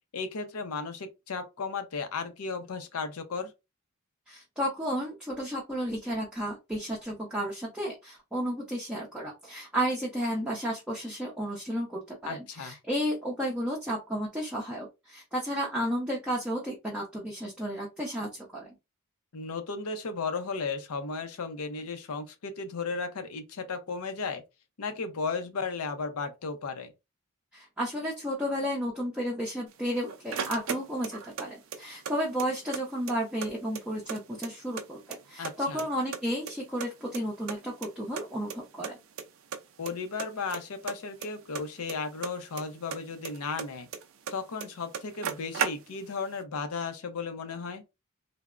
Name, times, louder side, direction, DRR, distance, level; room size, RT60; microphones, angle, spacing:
voice 1, 0.1-3.5 12.3-12.7 19.3-24.4 24.8-26.9 35.4-35.8 39.8-43.9 44.3-47.8, left 4 dB, 85° left, 0.6 m, -35 dB
voice 2, 4.3-18.7 27.5-39.0, equal, 5° right, 0.6 m, -32 dB
sound 1, 29.7-31.5 31.7-32.8 33.1-33.2 33.4-34.8 35.1-35.9 36.1-37.6 37.8-37.9 38.2-38.3 38.5-38.6 38.8-39.2 39.5-39.9 40.2-42.6 42.9-44.3 44.6-44.7 44.9-46.2, right 7 dB, 65° right, 0.4 m, -35 dB
3.4 x 2.0 x 2.4 m
head